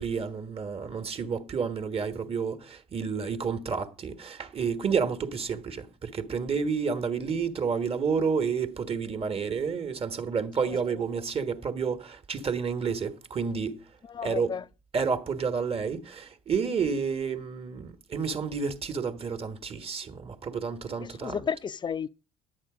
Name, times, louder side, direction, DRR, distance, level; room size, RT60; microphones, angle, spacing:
voice 1, 0.0-13.8 14.2-14.5 14.9-21.4, right 5 dB, 35° right, 1.3 m, -30 dB
voice 2, 14.1-14.6 21.0-22.1, left 7 dB, 25° left, 0.5 m, -32 dB
11.0 x 8.5 x 4.9 m
hypercardioid pair, 70°, 17 cm